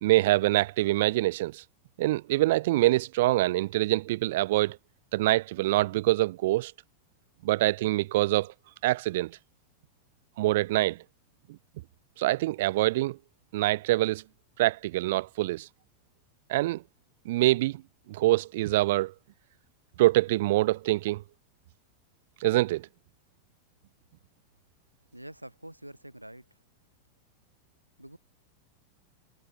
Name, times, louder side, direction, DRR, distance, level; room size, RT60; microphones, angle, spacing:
voice 1, 0.0-1.6 2.0-4.8 5.1-6.7 7.4-8.5 8.8-9.4 10.4-11.0 12.2-13.2 13.5-14.2 14.6-15.7 16.5-16.8 17.3-17.8 18.1-19.1 20.0-21.2 22.4-22.9, right 17 dB, 55° right, 0.4 m, -25 dB
voice 2, 25.1-26.5 28.0-28.2, right 1 dB, 85° right, 2.9 m, -45 dB
figure-of-eight pair, 90°, 0 cm